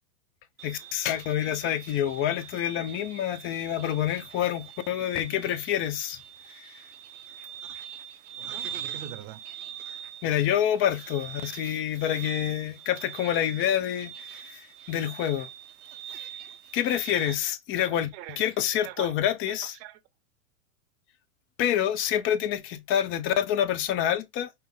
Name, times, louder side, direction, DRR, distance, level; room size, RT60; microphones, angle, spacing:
voice 1, 0.6-6.2 6.5-6.7 10.2-15.5 16.7-18.1 18.4-19.7 21.6-24.5, left 10 dB, 30° left, 0.6 m, -27 dB
sound 1, 0.6-17.4, right 10 dB, 75° right, 0.8 m, -43 dB
voice 2, 8.3-9.4 17.9-19.1 19.5-20.0, right 12 dB, 40° right, 0.8 m, -43 dB
5.4 x 2.0 x 3.7 m
hypercardioid pair, 115°, 45 cm